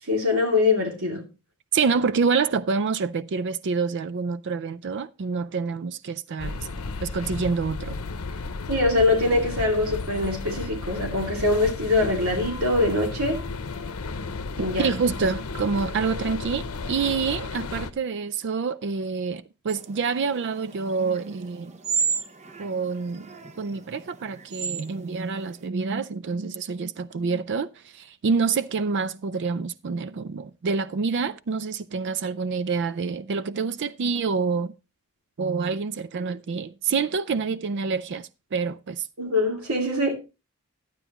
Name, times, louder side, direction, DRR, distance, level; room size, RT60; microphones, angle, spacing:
voice 1, 0.1-1.2 8.7-13.4 14.6-14.9 39.2-40.1, left 2 dB, 70° right, 2.6 m, -23 dB
voice 2, 1.7-6.6 7.0-8.0 14.8-21.7 22.6-23.3 23.6-34.7 35.4-39.1, right 5 dB, 55° right, 0.4 m, -27 dB
sound 1, 6.4-17.9, left 3 dB, 75° left, 0.8 m, -33 dB
sound 2, 19.7-25.7, right 6 dB, 30° right, 0.8 m, -33 dB
12.0 x 9.0 x 2.9 m
head